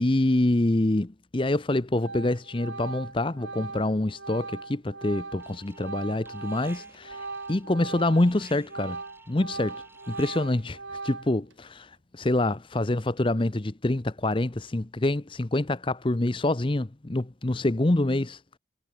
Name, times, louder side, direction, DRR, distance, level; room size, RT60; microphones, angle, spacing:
voice 1, 0.0-9.0 9.3-9.8 10.1-10.8 11.0-18.4, left 1 dB, 25° left, 0.7 m, -26 dB
Organ, 1.4-1.7 2.0-8.3 8.6-11.5, right 3 dB, 85° right, 7.5 m, -39 dB
Alarm, 5.4-6.0 6.2-10.7, right 2 dB, 10° right, 6.2 m, -53 dB
head